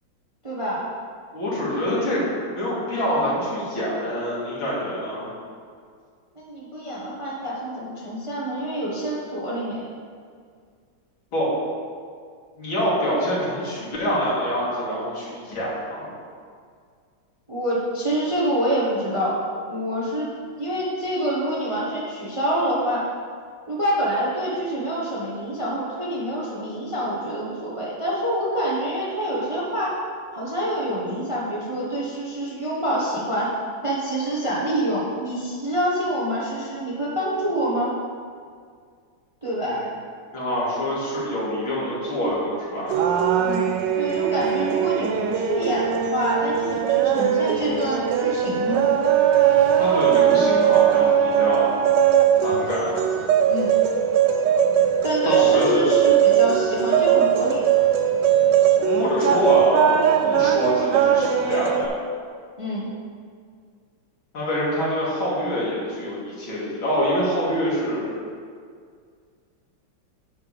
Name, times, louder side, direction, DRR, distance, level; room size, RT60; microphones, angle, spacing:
voice 1, 0.4-0.9 6.3-9.8 17.5-19.4 19.7-20.3 20.6-23.1 23.7-29.9 30.3-33.5 33.8-38.0 39.4-39.8 43.3-43.7 44.0-48.8 53.5-53.7 55.0-57.8 62.6-62.9, equal, 20° right, -6 dB, 0.9 m, -26 dB
voice 2, 1.3-2.2 2.5-5.3 11.3-11.5 12.6-16.2 39.6-39.9 40.3-43.0 49.8-51.7 52.4-53.0 55.2-55.9 58.3-58.5 58.9-60.0 60.2-61.9 64.3-68.1, equal, 75° left, -7 dB, 2.9 m, -25 dB
sound 1, 42.9-61.9, right 9 dB, 75° right, 1.1 m, -20 dB
9.3 x 3.4 x 6.7 m, 2.1 s
omnidirectional pair, 2.3 m